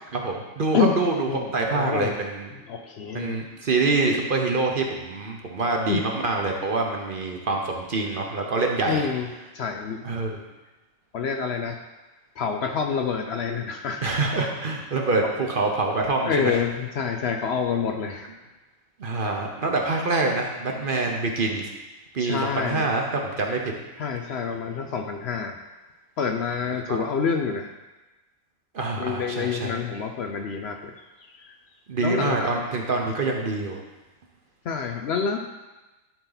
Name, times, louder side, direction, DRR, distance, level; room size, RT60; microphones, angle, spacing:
voice 1, 0.1-2.5 3.1-9.0 10.0-10.4 14.0-16.6 19.0-21.7 22.1-23.7 26.9-27.0 28.7-29.8 31.9-33.8, right 3 dB, 45° right, 1 dB, 0.9 m, -26 dB
voice 2, 1.3-2.1 2.7-3.4 5.9-6.0 8.9-9.3 9.5-10.1 11.1-11.8 12.4-14.0 15.2-15.3 16.2-18.3 22.2-22.9 24.0-25.6 26.2-27.7 29.0-30.9 31.4-31.5 32.0-32.6 34.6-35.4, left 6 dB, 60° left, 4 dB, 0.7 m, -27 dB
12.0 x 4.2 x 3.9 m, 1.1 s
omnidirectional pair, 1.4 m